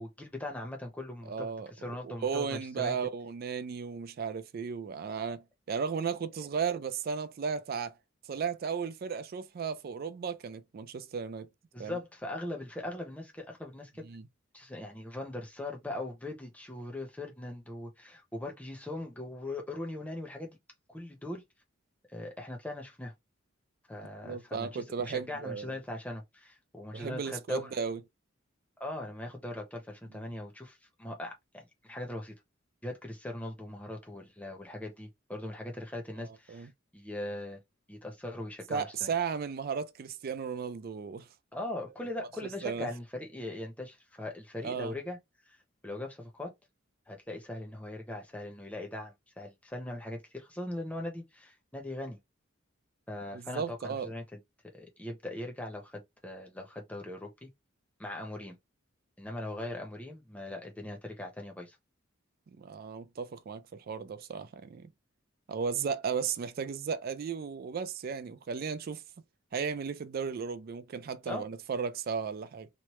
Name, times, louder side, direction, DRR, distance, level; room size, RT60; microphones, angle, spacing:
voice 1, 0.0-2.9 11.7-14.1 14.5-20.5 20.9-21.4 22.1-23.1 23.9-27.7 28.8-32.4 32.8-37.6 37.9-39.1 41.5-45.2 45.8-46.5 47.1-52.2 53.1-54.4 54.7-57.5 58.0-58.6 59.2-61.8 71.3-71.5, left 1 dB, 5° left, 0.8 m, -40 dB
voice 2, 1.3-1.7 2.0-8.0 8.3-11.5 11.8-12.0 14.0-14.2 24.2-25.7 26.9-28.0 36.2-36.7 38.7-41.3 42.2-42.3 42.6-42.9 44.6-45.0 53.3-54.1 62.5-64.9 65.5-69.0 69.5-72.7, right 6 dB, 50° right, 0.4 m, -35 dB
3.0 x 2.1 x 3.0 m
head